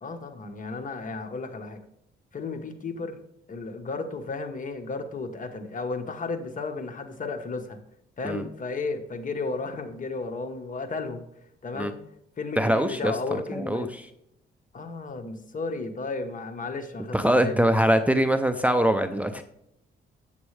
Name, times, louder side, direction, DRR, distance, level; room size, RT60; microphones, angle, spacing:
voice 1, 0.0-1.8 2.3-3.2 3.5-7.8 8.2-11.2 11.6-11.9 12.4-13.9 14.7-17.6, left 3 dB, 40° left, 6 dB, 1.1 m, -33 dB
voice 2, 12.6-13.9 17.1-19.4, right 1 dB, 5° right, 8 dB, 0.5 m, -23 dB
8.1 x 7.1 x 3.2 m, 0.77 s
cardioid pair, 90°, 20 cm